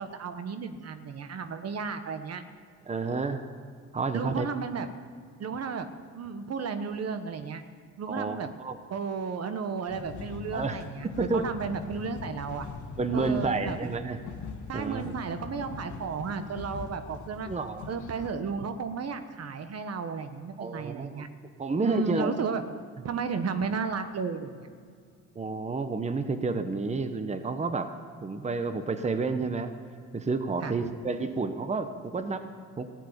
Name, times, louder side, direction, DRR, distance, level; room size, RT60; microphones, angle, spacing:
voice 1, 0.0-2.4 4.1-4.9 5.4-5.9 6.1-7.6 8.0-8.5 8.9-12.7 13.1-13.8 14.7-17.5 17.9-21.3 21.8-22.6 23.0-24.7 30.6-30.8, right 5 dB, 55° right, 9 dB, 1.1 m, -33 dB
voice 2, 2.9-3.4 3.9-4.5 8.1-8.8 10.5-10.8 11.2-11.5 13.0-14.2 14.7-15.0 17.5-17.9 20.6-21.3 21.6-22.3 25.3-27.9 28.2-29.7 30.1-32.4 32.8-32.9, right 4 dB, 20° right, 9 dB, 1.0 m, -30 dB
sound 1, 9.9-18.4, left 5 dB, 75° left, 1.5 m, -41 dB
14.5 x 7.5 x 10.0 m, 2.1 s
cardioid pair, 90°, 30 cm